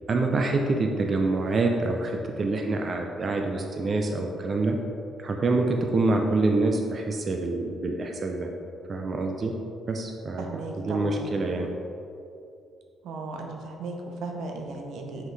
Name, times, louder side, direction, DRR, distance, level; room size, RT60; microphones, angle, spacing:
voice 1, 0.1-4.8 5.2-8.5 8.9-9.5 9.9-11.7, right 3 dB, 45° right, 3 dB, 0.5 m, -26 dB
voice 2, 10.4-11.3 13.0-15.3, right 3 dB, 80° right, 2 dB, 0.7 m, -36 dB
5.7 x 5.6 x 3.3 m, 2.6 s
cardioid pair, 90°, 0 cm